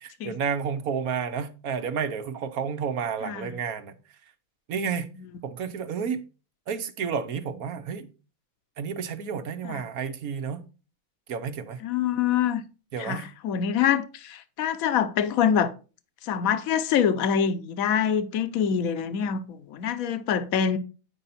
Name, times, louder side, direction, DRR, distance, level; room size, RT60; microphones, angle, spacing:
voice 1, 0.2-3.9 4.7-5.1 5.4-6.2 6.7-8.1 8.8-10.6 11.3-11.8 12.9-13.3, right 6 dB, 90° right, 1.4 m, -30 dB
voice 2, 3.2-3.5 5.2-5.3 9.6-9.8 11.8-12.6 13.0-15.7 16.2-20.8, left 8 dB, 75° left, 1.2 m, -25 dB
9.8 x 5.4 x 4.2 m
omnidirectional pair, 1.5 m